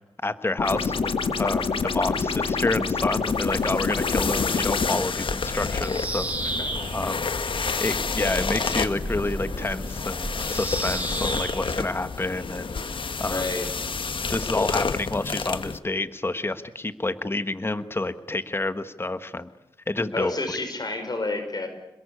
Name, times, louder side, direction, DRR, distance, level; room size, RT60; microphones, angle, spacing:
voice 1, 0.2-1.1 1.4-6.5 6.9-12.7 13.2-13.5 14.3-19.5 19.9-20.6, left 2 dB, 25° left, 11 dB, 1.4 m, -29 dB
sound 1, 0.6-5.0, left 5 dB, 85° left, 1.9 m, -26 dB
sound 2, 3.2-15.8, left 4 dB, 70° left, 1.5 m, -30 dB
Bird vocalization bird call bird song, 5.4-11.8, right 1 dB, 15° right, 6.4 m, -34 dB
voice 2, 13.3-13.7 20.1-21.7, left 2 dB, 50° left, 7 dB, 5.4 m, -29 dB
27.5 x 21.5 x 8.6 m, 0.90 s
wide cardioid pair, 95°, 9 cm